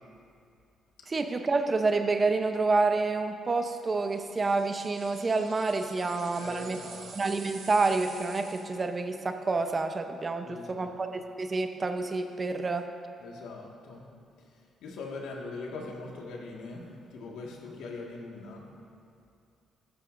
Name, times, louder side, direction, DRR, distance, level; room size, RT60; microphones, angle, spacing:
voice 1, 1.1-6.8 7.1-12.9, right 3 dB, 30° right, 7 dB, 0.8 m, -28 dB
sound 1, 4.1-8.9, right 5 dB, 65° right, 1.4 m, -48 dB
voice 2, 6.4-7.1 10.4-11.0 13.2-14.1 14.8-18.7, left 3 dB, 90° left, -1 dB, 1.8 m, -41 dB
14.0 x 13.5 x 2.6 m, 2.5 s
cardioid pair, 90°, 0 cm